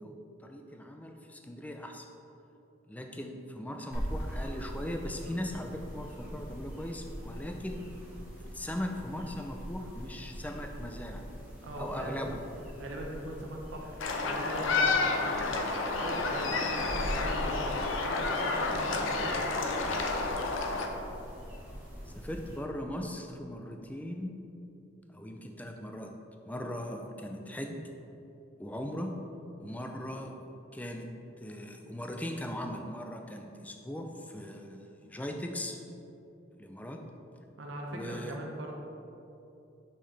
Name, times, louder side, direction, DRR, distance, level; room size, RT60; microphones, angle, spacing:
voice 1, 0.0-2.1 2.9-7.8 8.5-11.2 11.8-12.4 22.2-24.3 25.1-26.1 26.5-27.8 28.6-29.1 29.6-30.3 30.7-31.1 31.4-35.8 36.6-37.0 37.9-38.4, left 1 dB, 10° left, 3 dB, 0.4 m, -39 dB
sound 1, 3.9-22.6, equal, 10° right, 1.1 m, -42 dB
voice 2, 11.6-12.4 12.8-14.0 14.3-19.9 37.6-38.8, right 1 dB, 70° right, 0 dB, 0.8 m, -41 dB
sound 2, 14.0-20.9, left 3 dB, 80° left, 0.6 m, -30 dB
5.5 x 5.3 x 3.3 m, 2.8 s
head